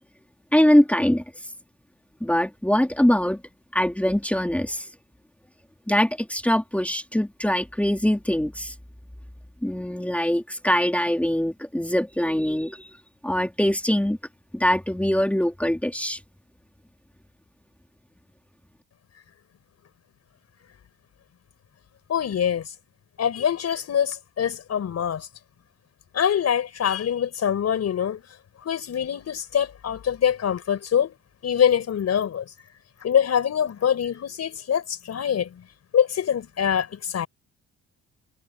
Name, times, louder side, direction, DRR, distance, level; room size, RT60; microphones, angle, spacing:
voice 1, 0.5-1.2 2.2-3.4 3.7-4.9 5.9-8.7 9.6-12.9 13.2-14.2 14.5-16.2, equal, 5° left, 3.0 m, -22 dB
voice 2, 22.1-22.7 23.2-25.3 26.1-28.2 28.6-31.1 31.4-32.4 33.0-35.6 35.9-37.3, left 8 dB, 60° left, 5.2 m, -24 dB
cardioid pair, 90°, 30 cm